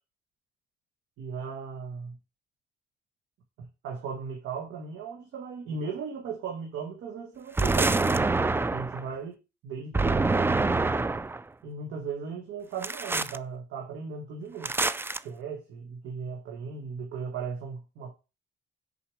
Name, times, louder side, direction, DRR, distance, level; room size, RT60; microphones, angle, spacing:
voice 1, 1.2-2.2 3.6-8.0 8.7-9.3 9.6-10.6 11.6-14.7 15.2-18.1, right 5 dB, 85° right, 1.7 m, -37 dB
sound 1, 7.6-9.0 9.9-11.4 12.8-13.4 14.6-15.2, right 3 dB, 10° right, 0.3 m, -26 dB
6.6 x 4.8 x 5.0 m
cardioid pair, 90°, 20 cm